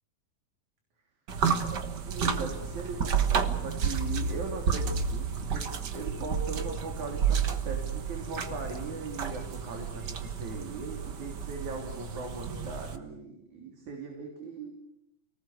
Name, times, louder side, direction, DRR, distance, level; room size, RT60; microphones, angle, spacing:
sound 1, 1.3-13.0, right 6 dB, 70° right, 1.0 m, -31 dB
voice 1, 1.9-3.1 3.6-5.6 5.9-14.7, right 3 dB, 55° right, 2 dB, 4.4 m, -39 dB
28.5 x 19.0 x 8.3 m, 0.80 s
omnidirectional pair, 4.3 m